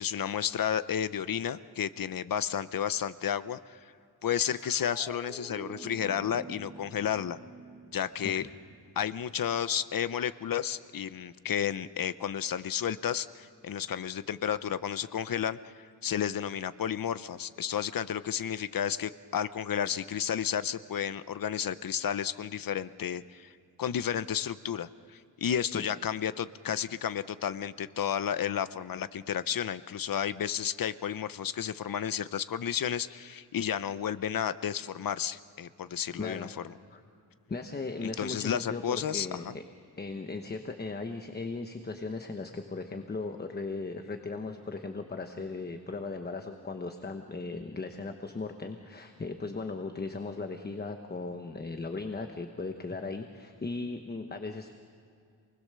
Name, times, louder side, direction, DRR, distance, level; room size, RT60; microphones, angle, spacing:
voice 1, 0.0-3.8 4.2-7.4 7.9-8.5 9.0-15.7 16.0-23.5 23.8-36.5 38.0-39.5, left 9 dB, 60° left, 14 dB, 0.7 m, -32 dB
sound 1, 4.4-11.1, right 2 dB, 5° right, 1.6 m, -49 dB
voice 2, 36.2-36.5 36.9-37.0 37.5-39.6 40.0-54.7, left 3 dB, 25° left, 6 dB, 1.1 m, -37 dB
28.0 x 20.0 x 6.8 m, 2.4 s
wide cardioid pair, 150°, 39 cm